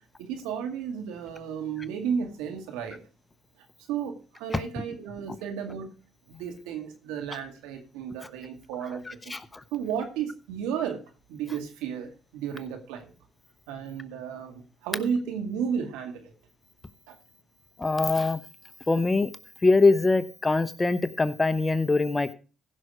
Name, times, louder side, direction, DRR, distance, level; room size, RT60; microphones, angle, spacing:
voice 1, 0.2-3.0 3.9-6.0 6.3-9.4 9.7-11.0 11.3-13.1 13.7-16.3 17.1-17.2, right 7 dB, 85° right, 5 dB, 2.2 m, -33 dB
voice 2, 17.8-18.4 18.9-19.3 19.6-22.3, left 3 dB, 20° left, 12 dB, 1.1 m, -22 dB
15.5 x 6.3 x 4.9 m, 0.35 s
hypercardioid pair, 55°, 0 cm